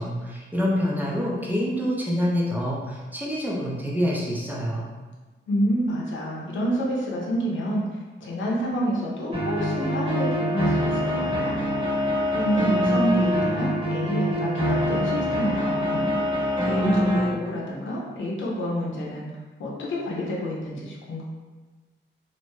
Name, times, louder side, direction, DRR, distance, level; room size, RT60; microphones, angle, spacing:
voice 1, 0.0-4.8, equal, 10° right, -5 dB, 0.5 m, -26 dB
voice 2, 5.5-7.8 8.2-11.7 12.3-16.4 16.7-19.3 19.6-21.2, equal, 80° left, -4 dB, 0.7 m, -28 dB
sound 1, 9.3-17.3, equal, 30° right, 0.9 m, -24 dB
2.6 x 2.1 x 3.1 m, 1.3 s
wide cardioid pair, 125°, 19 cm